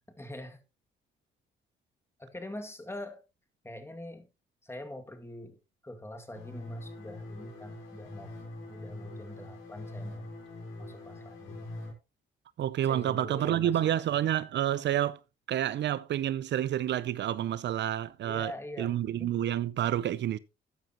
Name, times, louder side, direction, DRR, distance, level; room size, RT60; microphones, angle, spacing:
voice 1, 0.1-0.6 2.2-3.2 3.6-4.3 4.6-5.6 5.8-8.3 8.7-10.3 10.8-11.7 12.8-14.0 18.2-19.3, left 1 dB, 10° left, 2.2 m, -44 dB
sound 1, 6.3-11.9, left 2 dB, 85° left, 5.3 m, -43 dB
voice 2, 12.6-15.2 15.5-18.5 18.8-20.4, right 11 dB, 65° right, 0.6 m, -29 dB
13.5 x 9.1 x 2.9 m
cardioid pair, 90°, 20 cm